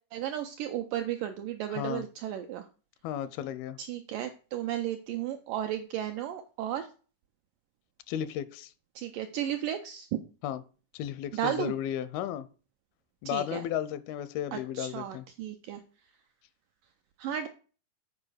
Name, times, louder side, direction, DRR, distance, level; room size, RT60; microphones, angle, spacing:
voice 1, 0.1-2.7 3.8-6.9 9.0-10.2 11.3-11.7 13.3-13.7 14.5-15.8 17.2-17.5, right 11 dB, 80° right, 1.9 m, -34 dB
voice 2, 1.7-2.0 3.0-3.8 8.1-8.7 10.4-10.6 10.9-12.5 13.2-15.2, left 11 dB, 85° left, 2.4 m, -34 dB
7.5 x 4.8 x 6.3 m
omnidirectional pair, 4.5 m